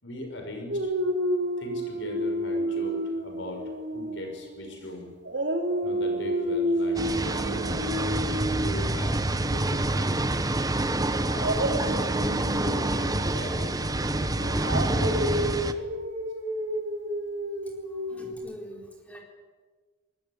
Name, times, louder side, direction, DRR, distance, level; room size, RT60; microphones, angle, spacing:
voice 1, 0.0-0.9 1.6-5.1 5.8-7.9 8.6-10.4 11.2-15.6, left 1 dB, 70° left, 4 dB, 5.7 m, -40 dB
Dog, 0.7-4.9 5.2-10.2 11.3-18.3, equal, 65° right, 4.2 m, -31 dB
sound 1, 7.0-15.7, right 2 dB, 20° right, 1.2 m, -27 dB
voice 2, 17.9-19.2, right 1 dB, 10° left, 1 dB, 4.3 m, -44 dB
24.5 x 20.5 x 9.6 m, 1.4 s
head